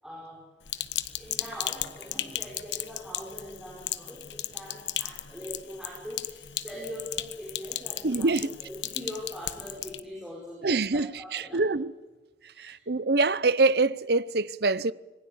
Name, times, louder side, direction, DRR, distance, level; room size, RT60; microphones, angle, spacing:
voice 1, 0.0-0.5 1.1-11.7 12.5-12.9, left 1 dB, 5° right, 5.0 m, -42 dB
Sink (filling or washing), 0.7-10.0, left 12 dB, 80° left, 1.2 m, -36 dB
voice 2, 8.0-8.6 10.6-11.9 12.6-14.9, right 3 dB, 60° right, 0.8 m, -25 dB
26.5 x 20.5 x 8.4 m
head